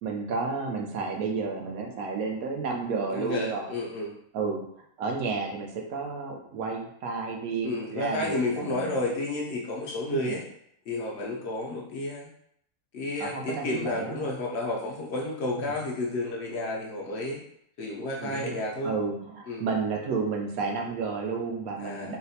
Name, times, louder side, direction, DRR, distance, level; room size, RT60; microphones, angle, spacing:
voice 1, 0.0-3.7 4.3-4.6 5.0-9.0 10.1-10.4 13.2-14.3 18.2-18.6 18.8-22.2, right 4 dB, 80° right, 2 dB, 1.1 m, -31 dB
voice 2, 3.1-4.2 7.6-10.4 10.9-12.3 12.9-17.4 17.8-18.9 19.5-19.6 21.8-22.2, left 2 dB, 65° left, -2 dB, 0.7 m, -31 dB
3.9 x 2.1 x 2.7 m, 0.71 s
omnidirectional pair, 1.5 m